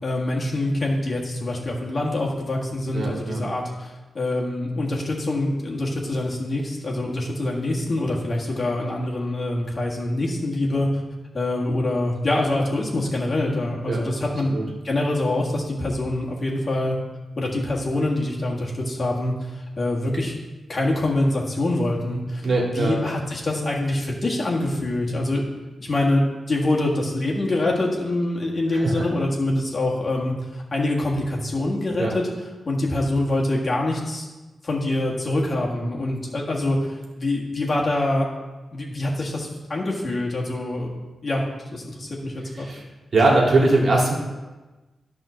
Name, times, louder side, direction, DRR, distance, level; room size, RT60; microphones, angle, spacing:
voice 1, 0.0-10.9 11.3-14.5 14.8-16.9 17.4-20.4 20.7-25.4 25.8-32.3 32.6-34.3 34.6-38.3 38.7-40.9 41.2-42.7, left 1 dB, 40° left, -3 dB, 1.7 m, -25 dB
voice 2, 2.9-3.4 13.9-14.0 14.5-14.7 22.4-23.1 28.7-29.0 32.0-32.1 42.6-42.8 43.1-44.1, right 2 dB, 55° right, -2 dB, 1.9 m, -21 dB
11.0 x 3.7 x 6.3 m, 1.2 s
wide cardioid pair, 115°, 0 cm